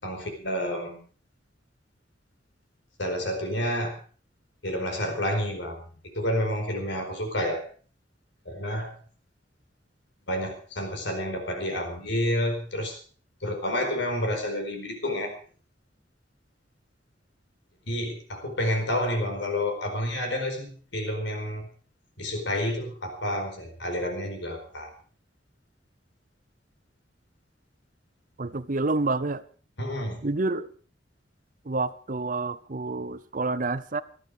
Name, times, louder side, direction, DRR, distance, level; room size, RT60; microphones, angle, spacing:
voice 1, 0.0-1.0 3.0-4.0 4.6-5.8 6.1-7.6 8.4-9.0 10.3-13.0 13.4-15.3 17.9-21.7 22.2-24.9 29.8-30.3, left 1 dB, 75° left, 5 dB, 4.6 m, -29 dB
voice 2, 28.4-29.4 30.2-30.7 31.6-34.0, right 3 dB, 45° right, 16 dB, 0.7 m, -28 dB
18.5 x 13.0 x 5.0 m, 0.42 s
head